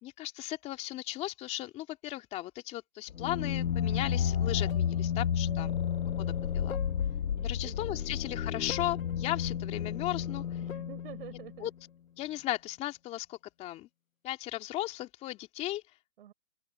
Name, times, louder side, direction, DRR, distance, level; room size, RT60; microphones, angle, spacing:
voice 1, 0.0-5.8 6.2-6.8 7.4-10.4 11.6-11.7 12.2-13.9 14.2-15.8, left 15 dB, 15° left, 2.8 m, -36 dB
sound 1, 3.1-11.7, left 8 dB, 80° left, 1.0 m, -32 dB
voice 2, 5.5-5.8 7.3-8.0 10.6-11.7 16.2-16.3, right 11 dB, 45° right, 5.5 m, -49 dB
open air
hypercardioid pair, 155°, 40 cm